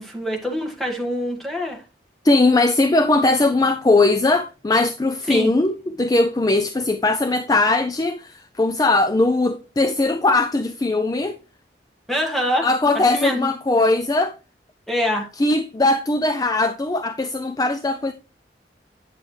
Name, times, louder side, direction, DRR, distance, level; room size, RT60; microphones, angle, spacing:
voice 1, 0.0-1.8 5.3-5.5 12.1-12.7 13.1-13.5 14.9-15.3, equal, ahead, 1.6 m, -24 dB
voice 2, 2.2-11.4 12.6-14.3 15.4-18.1, left 2 dB, 20° left, 0.4 m, -19 dB
9.1 x 7.1 x 3.2 m
head